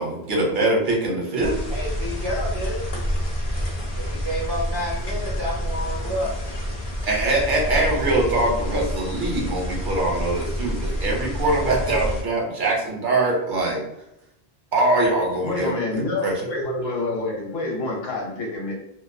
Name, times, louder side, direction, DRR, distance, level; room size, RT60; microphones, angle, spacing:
voice 1, 0.0-1.5 7.0-13.8 14.7-16.3, right 2 dB, 60° right, -2 dB, 0.8 m, -23 dB
sound 1, 1.4-12.2, equal, 45° left, 0.4 m, -28 dB
voice 2, 1.7-2.8 4.0-6.5, equal, 35° right, -5 dB, 0.5 m, -29 dB
voice 3, 15.4-18.7, left 2 dB, 75° left, 0 dB, 1.0 m, -27 dB
2.2 x 2.2 x 2.5 m, 0.84 s
omnidirectional pair, 1.0 m